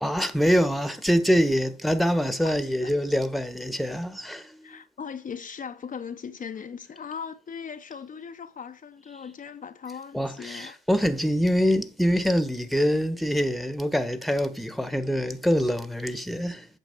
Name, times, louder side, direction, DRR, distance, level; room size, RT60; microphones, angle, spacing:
voice 1, 0.0-4.8 10.1-16.7, equal, ahead, 1.3 m, -25 dB
voice 2, 2.4-2.9 4.6-10.7, left 6 dB, 40° left, 0.9 m, -39 dB
9.1 x 7.2 x 6.7 m
cardioid pair, 90°, 20 cm